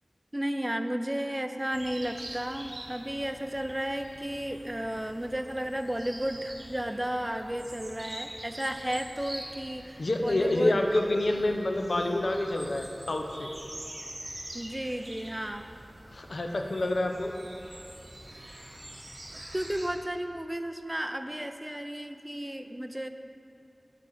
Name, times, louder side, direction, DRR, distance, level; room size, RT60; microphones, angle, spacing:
voice 1, 0.3-10.8 14.5-15.7 19.3-23.1, right 1 dB, 20° right, 8 dB, 0.3 m, -33 dB
sound 1, 1.7-19.9, right 1 dB, 45° right, 0.8 m, -45 dB
voice 2, 10.0-13.5 16.1-17.3, left 1 dB, 85° left, 3 dB, 0.5 m, -28 dB
7.1 x 4.1 x 4.8 m, 2.6 s
wide cardioid pair, 55°, 0 cm